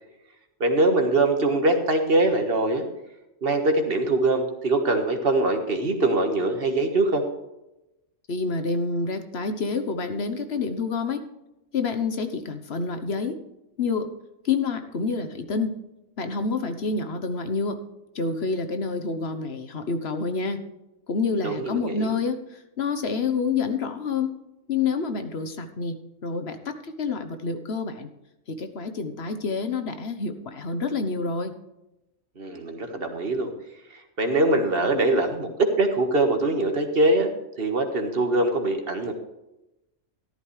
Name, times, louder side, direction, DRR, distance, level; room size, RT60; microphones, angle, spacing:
voice 1, 0.6-2.9 3.4-7.2 21.4-22.1 32.4-33.5 33.9-37.3 37.6-39.1, right 2 dB, 45° right, 5 dB, 1.7 m, -23 dB
voice 2, 8.3-11.2 11.7-13.4 13.8-14.1 14.4-15.8 16.2-17.8 18.1-20.6 21.1-24.3 24.7-28.1 28.5-31.5, left 4 dB, 55° left, 8 dB, 1.3 m, -28 dB
13.5 x 11.5 x 3.3 m, 0.94 s
omnidirectional pair, 1.3 m